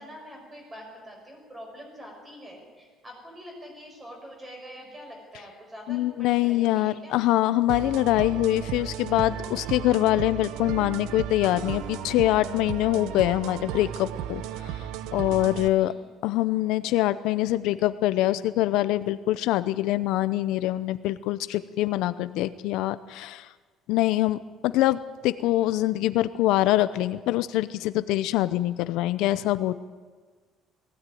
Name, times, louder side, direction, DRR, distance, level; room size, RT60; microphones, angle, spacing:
voice 1, 0.0-7.2 15.8-16.0, equal, 15° right, 1 dB, 5.6 m, -45 dB
voice 2, 5.9-14.7 15.1-15.9 16.2-23.5 23.9-29.7, left 15 dB, 70° left, 13 dB, 0.6 m, -24 dB
sound 1, 7.7-15.7, right 10 dB, 85° right, 0.8 m, -35 dB
19.0 x 16.5 x 9.3 m, 1.5 s
cardioid pair, 175°, 0 cm